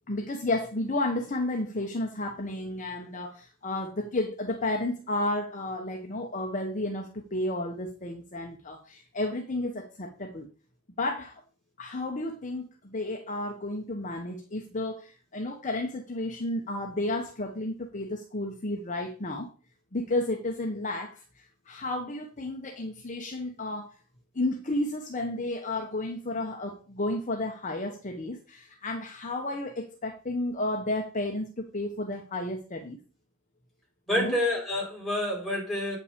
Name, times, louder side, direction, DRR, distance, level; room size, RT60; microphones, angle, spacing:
voice 1, 0.1-10.5 11.0-11.4 11.8-19.5 19.9-23.9 24.3-33.0 34.1-34.4, left 2 dB, 35° left, 1.0 m, -32 dB
voice 2, 34.1-36.0, left 1 dB, ahead, 4.0 m, -28 dB
8.3 x 5.9 x 5.1 m
head